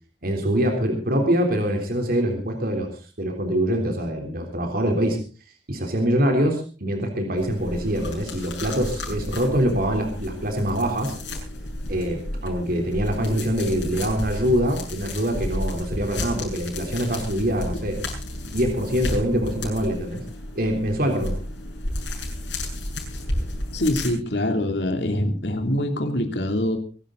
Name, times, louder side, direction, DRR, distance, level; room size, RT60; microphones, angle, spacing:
voice 1, 0.2-5.2 5.7-11.1 11.9-18.0 18.5-20.2 20.6-21.4, equal, 55° right, 3 dB, 3.4 m, -24 dB
sound 1, 7.4-24.1, left 1 dB, 85° left, 8.0 m, -32 dB
voice 2, 23.7-26.8, left 1 dB, 65° left, 5 dB, 2.9 m, -24 dB
24.0 x 12.0 x 3.9 m, 0.36 s
head